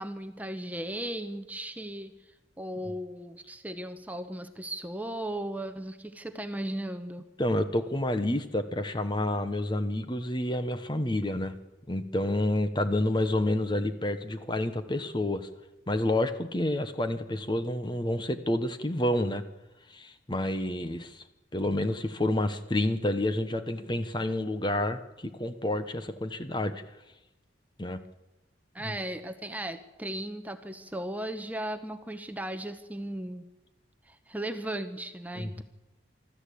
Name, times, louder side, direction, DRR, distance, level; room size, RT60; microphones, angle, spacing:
voice 1, 0.0-2.1 2.6-7.3 28.7-33.4 34.1-35.6, right 1 dB, 10° right, 8 dB, 1.0 m, -36 dB
voice 2, 7.4-11.5 11.9-15.5 15.9-19.4 19.9-21.2 21.5-26.8 27.8-28.0 28.8-29.0 35.3-35.6, left 1 dB, 25° left, 10 dB, 1.0 m, -29 dB
24.5 x 13.5 x 8.5 m, 1.0 s
head